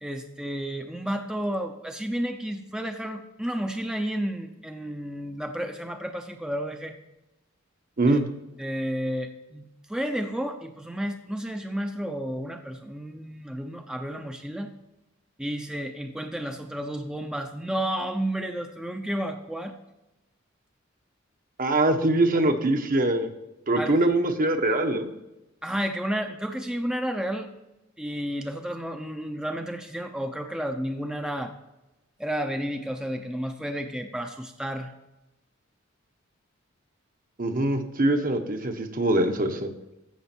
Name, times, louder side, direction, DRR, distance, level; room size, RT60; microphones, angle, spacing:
voice 1, 0.0-6.9 8.1-8.2 8.6-14.7 15.4-19.7 23.8-24.1 25.6-27.5 28.0-31.5 32.2-34.9, equal, 5° right, 5 dB, 0.7 m, -31 dB
voice 2, 21.6-23.3 23.7-25.1 37.4-39.7, right 2 dB, 45° right, 6 dB, 1.3 m, -23 dB
15.5 x 6.4 x 4.5 m, 0.96 s
head